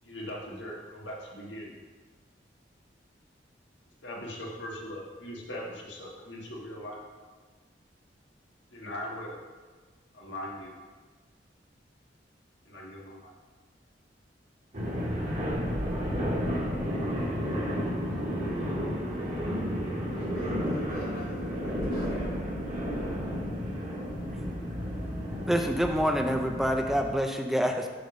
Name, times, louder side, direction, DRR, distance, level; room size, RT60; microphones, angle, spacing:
voice 1, 0.0-1.7 4.0-7.0 8.7-9.4 10.1-10.8 12.6-13.3, left 1 dB, 80° left, -2 dB, 1.6 m, -40 dB
sound 1, 14.7-27.1, equal, 45° right, 1.7 m, -32 dB
voice 2, 20.1-22.4, left 4 dB, 55° left, 2 dB, 0.4 m, -47 dB
voice 3, 25.5-27.9, equal, ahead, 3 dB, 0.4 m, -26 dB
7.8 x 3.5 x 6.3 m, 1.4 s
head